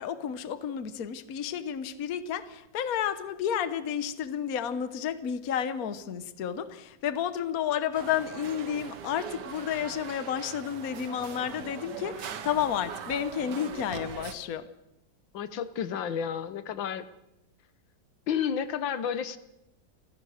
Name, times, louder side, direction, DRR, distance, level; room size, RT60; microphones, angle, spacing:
voice 1, 0.0-14.7, left 9 dB, 55° left, 12 dB, 1.4 m, -31 dB
sound 1, 7.9-14.3, right 7 dB, 65° right, 1.7 m, -41 dB
voice 2, 15.3-17.1 18.3-19.4, left 8 dB, 90° left, 13 dB, 1.8 m, -31 dB
29.0 x 15.5 x 6.5 m, 0.91 s
omnidirectional pair, 2.0 m